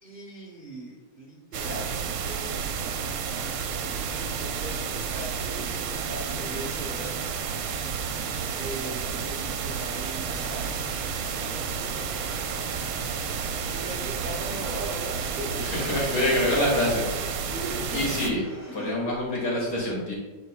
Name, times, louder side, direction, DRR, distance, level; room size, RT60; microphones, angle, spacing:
voice 1, 0.0-2.7 3.9-7.1 8.5-10.7 11.3-12.1 13.6-16.6 17.5-18.0 18.7-19.0, right 1 dB, 50° right, -2 dB, 0.6 m, -39 dB
sound 1, 1.5-18.3, right 6 dB, 80° right, 1.5 m, -31 dB
sound 2, 10.2-19.0, equal, 25° left, 1.5 m, -45 dB
voice 2, 15.3-17.0 17.9-18.5 18.7-20.1, left 1 dB, 50° left, -4 dB, 2.7 m, -26 dB
11.5 x 4.7 x 2.2 m, 1.2 s
omnidirectional pair, 2.4 m